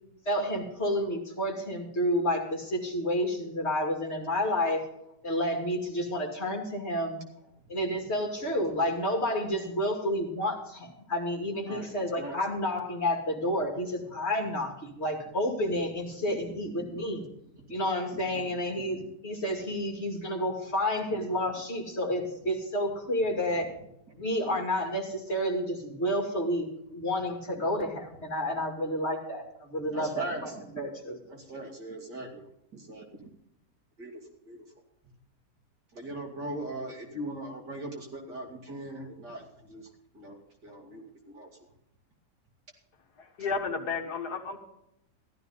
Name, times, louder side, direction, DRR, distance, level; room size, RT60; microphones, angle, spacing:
voice 1, 0.3-4.8 5.2-7.2 7.7-17.2 17.7-23.7 24.1-31.2, left 1 dB, 40° left, 1 dB, 2.7 m, -30 dB
voice 2, 16.5-17.0 18.1-18.4 18.8-19.1 19.6-19.7 24.1-24.2 29.9-30.6 31.3-32.4 32.7-33.1 34.0-34.1 34.5-34.6 35.9-39.9 40.1-40.4 40.6-41.7, right 1 dB, 75° right, 1 dB, 3.0 m, -40 dB
voice 3, 43.2-44.6, left 4 dB, 70° left, 4 dB, 1.9 m, -32 dB
15.0 x 12.5 x 4.0 m, 0.80 s
omnidirectional pair, 1.8 m